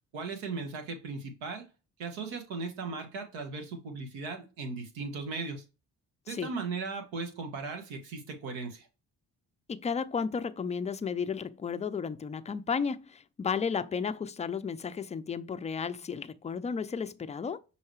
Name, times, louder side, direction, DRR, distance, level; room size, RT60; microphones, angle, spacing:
voice 1, 0.1-1.7 2.0-5.6 6.3-8.9, right 4 dB, 80° right, 1.2 m, -37 dB
voice 2, 9.7-17.6, left 6 dB, 15° left, 0.3 m, -33 dB
5.7 x 2.8 x 3.1 m
hypercardioid pair, 50°, 45 cm